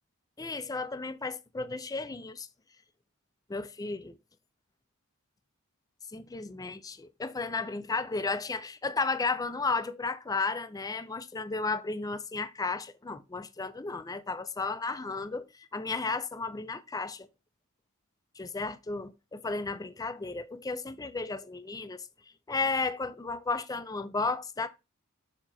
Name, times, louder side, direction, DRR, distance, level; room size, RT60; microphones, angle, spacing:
voice 1, 0.4-2.5 3.5-4.1 6.1-15.4 15.7-17.3 18.4-22.0 22.5-24.7, left 3 dB, 15° left, 0.4 m, -33 dB
7.2 x 2.9 x 5.2 m
head